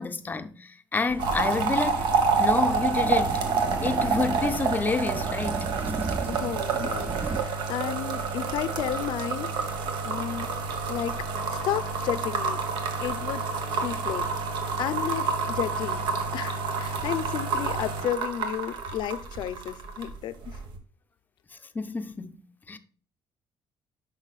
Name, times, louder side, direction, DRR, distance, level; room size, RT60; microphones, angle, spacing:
voice 1, 0.0-2.0 2.4-3.4 3.8-5.7 21.7-22.8, left 4 dB, 20° left, 0.6 m, -29 dB
sound 1, 1.1-7.4, right 3 dB, 25° right, 0.4 m, -36 dB
sound 2, 1.2-20.1 20.4-20.8, right 4 dB, 80° right, 1.4 m, -28 dB
voice 2, 6.3-10.5 10.9-12.6 13.0-13.5 13.7-14.3 14.8-16.1 16.3-20.6, left 11 dB, 75° left, 0.6 m, -33 dB
10.5 x 5.6 x 2.4 m
cardioid pair, 135°, 8 cm